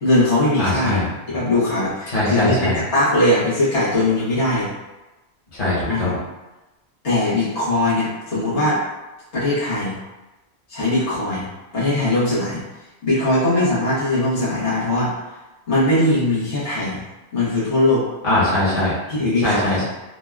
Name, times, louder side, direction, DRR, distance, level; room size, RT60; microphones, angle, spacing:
voice 1, 0.0-4.7 5.9-6.1 7.0-8.8 9.3-10.0 10.7-11.5 11.7-12.6 13.0-15.1 15.7-17.0 17.3-18.0 19.1-19.8, left 1 dB, 90° left, -10 dB, 1.4 m, -20 dB
voice 2, 0.6-1.1 2.1-2.8 5.5-6.2 18.2-19.0 19.4-19.8, left 1 dB, 55° left, -9 dB, 1.3 m, -21 dB
3.5 x 2.2 x 2.3 m, 1.1 s
omnidirectional pair, 1.1 m